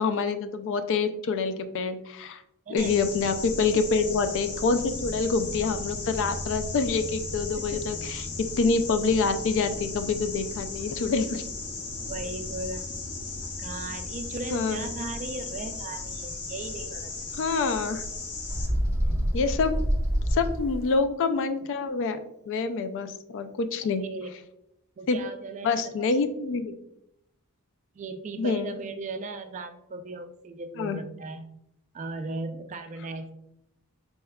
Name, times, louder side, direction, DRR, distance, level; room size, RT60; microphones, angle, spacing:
voice 1, 0.0-2.4 2.7-11.4 14.5-14.9 17.4-18.0 19.3-19.8 20.3-22.2 22.5-24.0 25.1-25.2 25.6-26.7 28.4-28.7 30.8-31.0, left 4 dB, 60° left, 10 dB, 0.3 m, -26 dB
voice 2, 2.7-3.0 3.6-3.8 7.6-7.8 12.1-12.9 13.6-17.4 23.8-24.3 25.0-26.1 26.4-26.6 27.9-31.5 31.9-33.3, right 3 dB, 35° right, 7 dB, 0.3 m, -37 dB
sound 1, 2.8-18.7, left 3 dB, 85° left, 0.8 m, -36 dB
Bird, 18.5-20.9, equal, 15° right, 0.9 m, -26 dB
4.1 x 3.5 x 2.2 m, 0.80 s
head